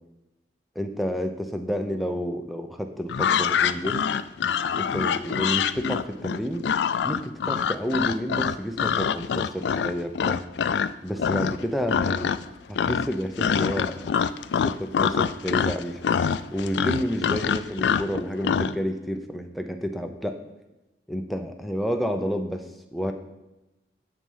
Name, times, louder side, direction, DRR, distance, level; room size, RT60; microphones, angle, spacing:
voice 1, 0.7-4.0 4.8-6.6 7.0-10.4 11.0-12.4 12.7-14.1 14.6-16.0 16.5-20.4 21.1-23.1, equal, ahead, 5 dB, 0.7 m, -30 dB
sound 1, 3.1-10.9 11.2-11.6 11.9-12.5 12.7-18.7, left 7 dB, 75° left, 0.3 m, -25 dB
7.9 x 6.9 x 5.6 m, 1.0 s
head